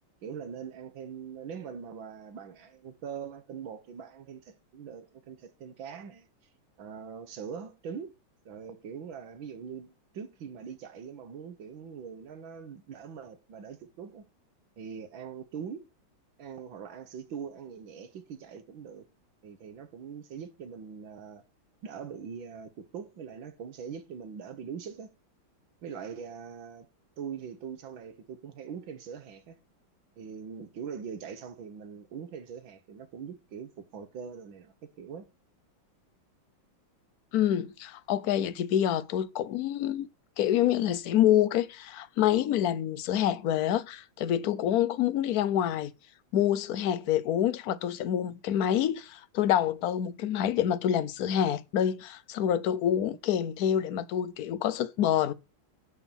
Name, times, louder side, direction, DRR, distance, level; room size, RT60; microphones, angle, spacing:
voice 1, 0.2-6.3 6.8-8.1 8.5-14.2 14.8-15.9 16.4-19.1 19.4-21.4 21.8-25.1 25.8-26.9 27.2-29.6 30.2-35.3, right 7 dB, 70° right, 1.9 m, -42 dB
voice 2, 37.3-40.1 40.4-45.9 46.3-55.3, left 10 dB, 70° left, 0.9 m, -27 dB
11.0 x 4.5 x 7.2 m
omnidirectional pair, 2.3 m